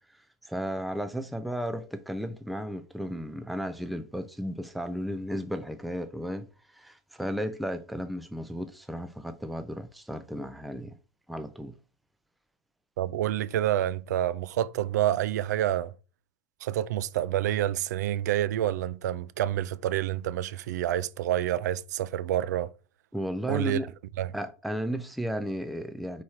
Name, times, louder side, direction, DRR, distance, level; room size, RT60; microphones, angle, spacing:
voice 1, 0.4-11.0 11.3-11.8 23.1-23.9 24.3-26.2, equal, ahead, 0.4 m, -34 dB
voice 2, 13.0-15.9 16.6-22.7 23.5-23.8 24.2-24.3, right 12 dB, 75° right, 0.5 m, -28 dB
4.6 x 4.2 x 4.8 m
supercardioid pair, 170°, 9 cm